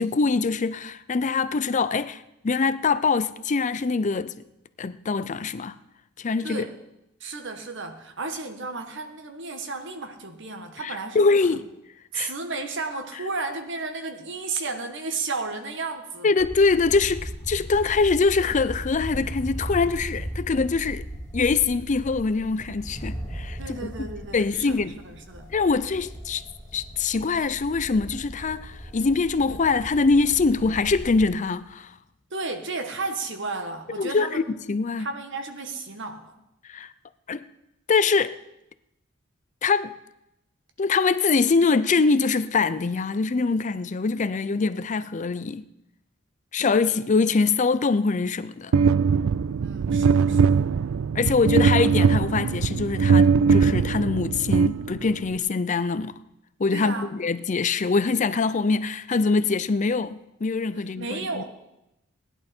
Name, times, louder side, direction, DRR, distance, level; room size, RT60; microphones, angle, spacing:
voice 1, 0.0-4.3 4.8-5.7 6.2-6.6 10.8-11.6 12.1-12.3 16.2-21.0 21.3-24.1 24.3-24.9 25.5-26.4 26.7-31.9 34.0-34.4 34.7-35.1 36.7-36.9 37.3-37.5 37.9-38.4 39.6-39.9 40.8-45.6 46.5-48.7 51.1-56.1 56.6-61.4, left 4 dB, 35° left, 0.5 m, -23 dB
voice 2, 7.2-11.6 12.1-16.4 23.6-25.5 32.3-34.5 35.0-36.3 49.6-50.6 56.7-57.1 60.8-61.4, right 3 dB, 60° right, 1.6 m, -33 dB
sound 1, 16.4-31.3, equal, 15° left, 6.8 m, -37 dB
sound 2, 48.7-55.3, right 5 dB, 80° right, 0.4 m, -21 dB
18.0 x 11.0 x 4.4 m
head